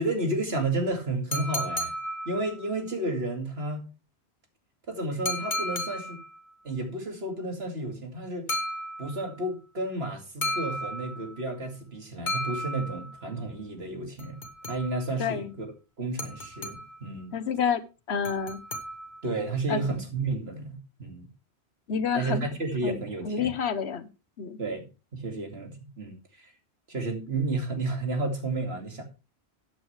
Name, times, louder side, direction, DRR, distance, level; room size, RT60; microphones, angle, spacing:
voice 1, 0.0-1.9 2.3-3.8 4.9-6.2 6.6-8.5 9.0-14.4 14.7-15.7 16.0-17.3 19.2-21.3 22.1-23.5 24.6-24.9 25.1-26.5 26.9-29.0, right 2 dB, 70° right, 2.6 m, -31 dB
sound 1, 1.3-2.8 5.3-6.4 8.5-9.4 10.4-11.4 12.3-13.3 14.2-15.2 16.2-17.1 18.2-19.3, equal, 50° left, 1.8 m, -34 dB
voice 2, 15.2-15.5 17.3-17.8 18.1-18.6 19.7-19.8 21.9-22.5 22.8-24.1 24.4-24.6, left 6 dB, 85° left, 1.3 m, -28 dB
13.5 x 8.9 x 3.3 m
omnidirectional pair, 1.1 m